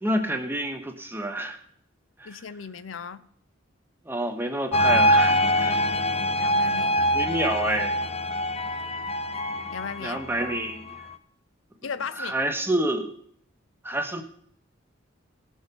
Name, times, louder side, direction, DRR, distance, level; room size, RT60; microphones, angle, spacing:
voice 1, 0.0-1.6 2.2-2.4 4.0-6.0 7.1-8.0 10.0-11.0 12.2-13.1 13.8-14.2, right 1 dB, 10° right, 1.1 m, -28 dB
voice 2, 2.2-3.2 6.4-7.0 9.7-10.2 11.8-12.3, left 6 dB, 80° left, 0.6 m, -36 dB
sound 1, 4.7-11.1, equal, 30° left, 0.7 m, -24 dB
17.5 x 6.3 x 5.3 m
head